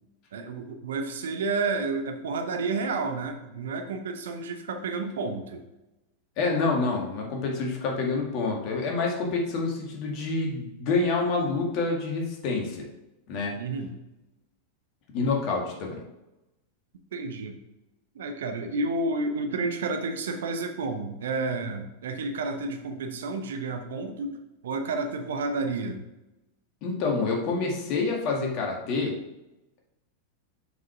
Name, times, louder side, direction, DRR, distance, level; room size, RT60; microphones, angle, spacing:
voice 1, 0.3-5.6 13.6-13.9 17.1-17.6 18.1-24.4 24.6-26.0, right 3 dB, 60° right, 6 dB, 0.9 m, -30 dB
voice 2, 6.4-12.9 13.3-13.5 15.1-16.0 26.8-29.2, left 3 dB, 40° left, 0 dB, 1.9 m, -27 dB
6.9 x 4.8 x 4.7 m, 0.95 s
figure-of-eight pair, 90°, 0 cm